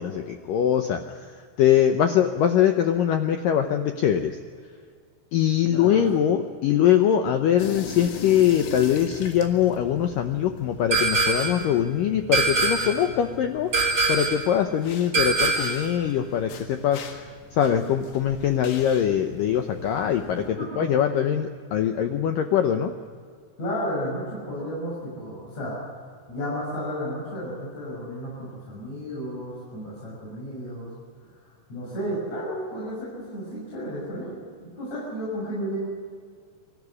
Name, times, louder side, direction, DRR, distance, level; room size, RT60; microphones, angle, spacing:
voice 1, 0.0-4.4 5.3-17.3 17.5-20.4 20.8-22.9, left 9 dB, 90° left, 6 dB, 1.9 m, -22 dB
voice 2, 5.7-6.0 20.6-20.9 23.6-25.8 26.3-30.9 31.7-35.8, equal, 40° left, -6 dB, 7.5 m, -33 dB
sound 1, 7.6-20.5, left 6 dB, 75° left, 3.9 m, -41 dB
sound 2, 10.9-11.6 12.3-13.1 13.7-14.5 15.1-15.9, right 3 dB, 40° right, 3.1 m, -23 dB
24.5 x 14.0 x 9.7 m, 2.1 s
omnidirectional pair, 5.2 m